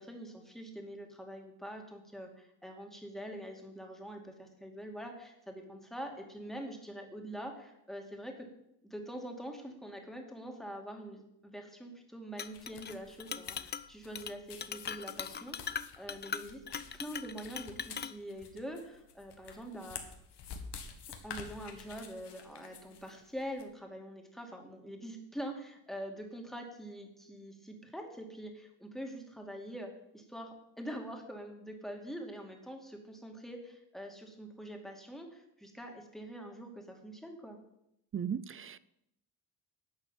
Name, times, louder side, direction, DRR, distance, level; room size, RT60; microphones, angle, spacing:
voice 1, 0.0-8.5 8.8-16.6 16.9-20.0 21.2-37.6, equal, ahead, 2 dB, 2.4 m, -44 dB
Chink clink, 12.4-12.9 13.2-13.9 14.1-14.3 14.6-18.1, left 7 dB, 25° left, 0.4 m, -40 dB
sound 1, 12.5-23.6, left 6 dB, 75° left, 1.8 m, -50 dB
voice 2, 38.1-38.9, right 7 dB, 30° right, 17 dB, 0.5 m, -37 dB
11.5 x 6.1 x 9.1 m, 0.81 s
cardioid pair, 115°, 41 cm